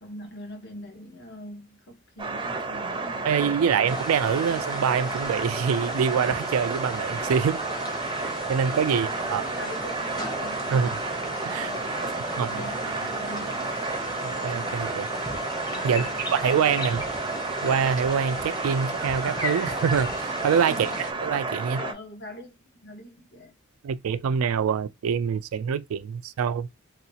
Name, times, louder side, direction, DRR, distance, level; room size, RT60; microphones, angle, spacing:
voice 1, 0.0-3.9 7.6-7.8 8.2-10.7 11.5-13.9 15.8-16.9 20.7-21.0 21.8-23.6, left 1 dB, 60° left, 1.1 m, -43 dB
sound 1, 2.2-21.9, right 3 dB, 25° right, 0.6 m, -31 dB
voice 2, 3.3-7.6 8.5-9.4 10.7-10.9 11.4-11.7 12.4-12.5 14.2-15.1 15.8-17.0 17.6-21.8 23.8-26.7, right 7 dB, 80° right, 0.3 m, -25 dB
sound 2, 3.9-21.1, left 1 dB, 20° left, 0.9 m, -37 dB
3.8 x 2.4 x 2.8 m
head